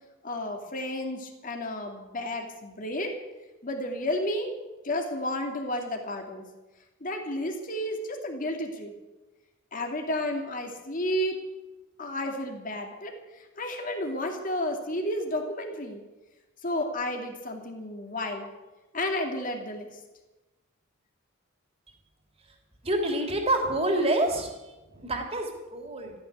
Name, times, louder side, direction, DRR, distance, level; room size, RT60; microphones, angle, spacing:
voice 1, 0.2-3.2 3.6-4.5 4.8-6.5 7.0-8.9 9.7-11.4 12.0-16.0 16.6-18.5 18.9-19.9, left 1 dB, 40° left, 3 dB, 2.5 m, -32 dB
voice 2, 22.8-26.1, right 1 dB, 30° right, 3 dB, 3.1 m, -27 dB
14.5 x 10.5 x 9.9 m, 1.1 s
head